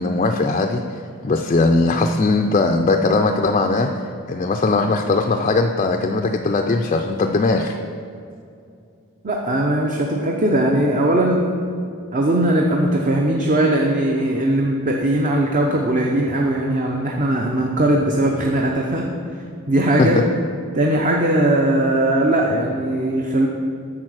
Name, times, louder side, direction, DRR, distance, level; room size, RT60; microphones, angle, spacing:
voice 1, 0.0-3.9 4.3-7.8 20.0-20.1, left 3 dB, 30° left, 4 dB, 0.4 m, -19 dB
voice 2, 9.2-11.4 12.1-19.0 19.7-20.2 20.7-23.5, right 1 dB, 35° right, 0 dB, 0.7 m, -19 dB
8.8 x 6.5 x 6.3 m, 2.4 s
head